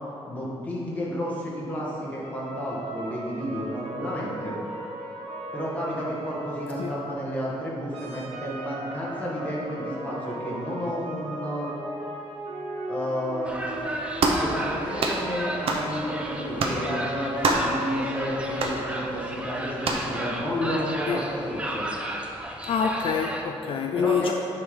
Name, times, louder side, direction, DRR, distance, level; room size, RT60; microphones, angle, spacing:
voice 1, 0.3-4.6 5.5-11.7 12.9-13.5 14.3-21.9 23.9-24.3, equal, 15° left, -6 dB, 1.5 m, -31 dB
sound 1, 2.2-7.5 7.9-21.6, right 1 dB, 80° right, 1.0 m, -38 dB
sound 2, 13.4-23.4, right 1 dB, 10° right, 0.5 m, -34 dB
sound 3, 14.2-14.5 15.0-15.2 15.7-15.9 16.6-16.8 17.4-17.7 18.6-18.8 19.8-20.1, right 3 dB, 65° right, 0.7 m, -24 dB
voice 2, 22.7-24.3, left 6 dB, 60° left, 3 dB, 0.3 m, -26 dB
9.4 x 3.7 x 5.0 m, 2.8 s
wide cardioid pair, 170°, 11 cm